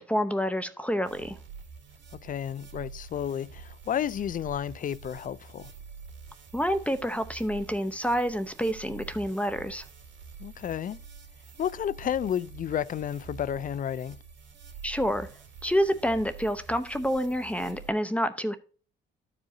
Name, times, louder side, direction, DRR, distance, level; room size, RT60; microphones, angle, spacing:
voice 1, 0.0-1.4 6.5-9.8 14.8-15.3 15.6-18.6, equal, 5° left, 0.7 m, -28 dB
sound 1, 1.0-17.9, right 5 dB, 65° right, 2.5 m, -47 dB
voice 2, 2.2-5.7 10.4-11.0 11.6-14.2, left 9 dB, 45° left, 0.4 m, -31 dB
13.0 x 4.9 x 2.7 m
cardioid pair, 90°, 20 cm